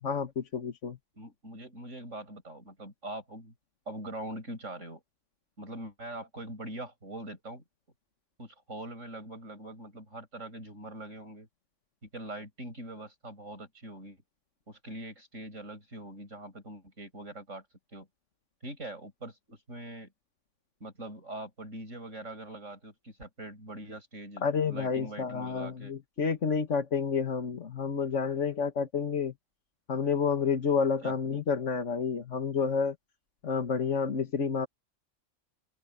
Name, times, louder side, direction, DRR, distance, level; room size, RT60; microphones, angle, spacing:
voice 1, 0.0-1.0 24.4-29.3 29.9-33.0 33.4-34.7, left 5 dB, 70° left, 1.8 m, -29 dB
voice 2, 1.1-3.5 3.9-5.0 5.6-7.6 8.4-11.5 12.0-14.2 14.7-17.6 17.9-18.1 18.6-20.1 20.8-25.9 31.0-31.1, right 1 dB, 75° right, 8.6 m, -43 dB
open air
omnidirectional pair, 1.3 m